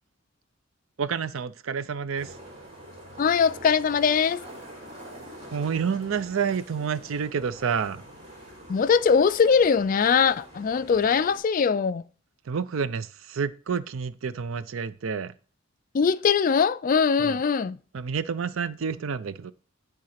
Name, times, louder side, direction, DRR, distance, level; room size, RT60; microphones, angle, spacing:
voice 1, 1.0-2.3 5.5-8.0 12.5-15.3 17.2-17.4 17.9-19.5, right 6 dB, 75° right, 0.5 m, -29 dB
sound 1, 2.2-11.4, right 1 dB, 35° right, 3.4 m, -45 dB
voice 2, 3.2-4.4 8.7-12.0 15.9-17.8, left 6 dB, 40° left, 0.3 m, -21 dB
10.5 x 3.8 x 5.7 m
head